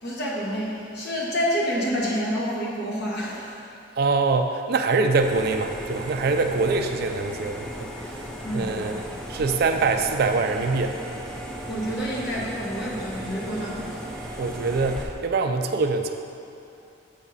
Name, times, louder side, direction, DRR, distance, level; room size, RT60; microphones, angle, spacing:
voice 1, 0.0-3.6 8.4-9.0 11.7-14.1, equal, 55° left, -5 dB, 1.3 m, -28 dB
voice 2, 4.0-7.9 8.5-9.0 9.3-11.0 14.4-16.1, right 3 dB, 50° right, 5 dB, 0.3 m, -24 dB
sound 1, 5.2-15.0, equal, 5° left, 0.5 m, -36 dB
7.1 x 3.6 x 5.5 m, 2.7 s
head